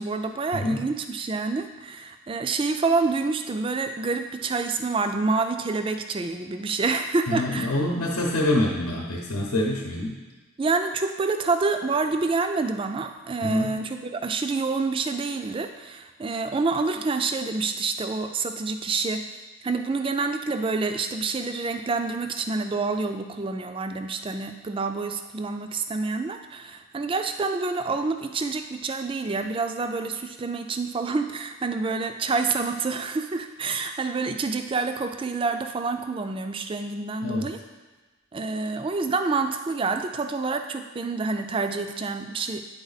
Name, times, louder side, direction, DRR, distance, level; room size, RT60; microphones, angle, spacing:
voice 1, 0.0-7.8 10.6-19.2 19.6-37.6 38.3-42.6, right 4 dB, 25° right, 7 dB, 0.3 m, -27 dB
voice 2, 0.5-0.8 7.3-10.2 13.4-13.7 37.2-37.5, left 1 dB, 80° left, -1 dB, 0.9 m, -26 dB
9.3 x 4.3 x 4.0 m, 1.3 s
head